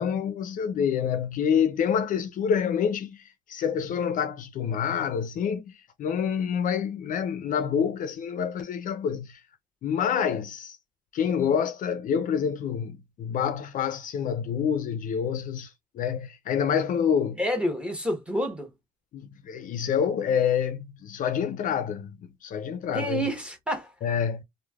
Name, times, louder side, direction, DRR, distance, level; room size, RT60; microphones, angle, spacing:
voice 1, 0.0-5.6 6.0-9.4 9.8-10.8 11.1-17.4 19.1-22.2 22.4-23.2 24.0-24.4, left 7 dB, 50° left, 0.4 m, -27 dB
voice 2, 17.4-18.7 22.9-23.9, equal, 5° right, 0.9 m, -28 dB
3.2 x 2.1 x 2.3 m
cardioid pair, 110°, 17 cm